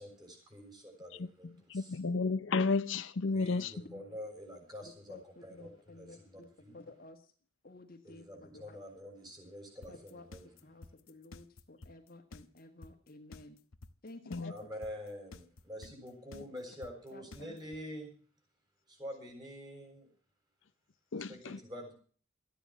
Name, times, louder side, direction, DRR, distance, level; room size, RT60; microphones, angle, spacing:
voice 1, 0.0-2.0 3.3-5.2 5.4-6.8 8.0-10.4 14.5-18.2 18.9-20.1 21.1-21.9, equal, 20° right, 6.8 m, -47 dB
voice 2, 1.7-3.7 14.3-14.5 21.1-21.6, left 4 dB, 65° left, 0.6 m, -32 dB
voice 3, 4.8-6.5 6.7-7.3 7.6-8.8 9.9-10.3 10.6-13.6 14.0-14.7 16.3-16.5 17.1-17.6 21.1-21.3, left 2 dB, 45° left, 1.7 m, -53 dB
sound 1, 9.8-17.8, left 2 dB, 85° left, 1.0 m, -51 dB
14.5 x 10.0 x 7.3 m
head